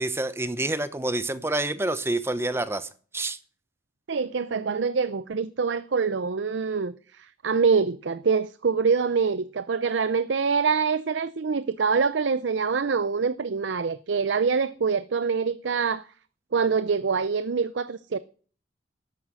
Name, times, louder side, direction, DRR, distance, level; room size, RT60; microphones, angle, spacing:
voice 1, 0.0-3.4, right 2 dB, 15° right, 0.9 m, -28 dB
voice 2, 4.1-16.0 16.5-18.2, right 5 dB, 85° right, 0.6 m, -25 dB
12.5 x 9.1 x 6.2 m
head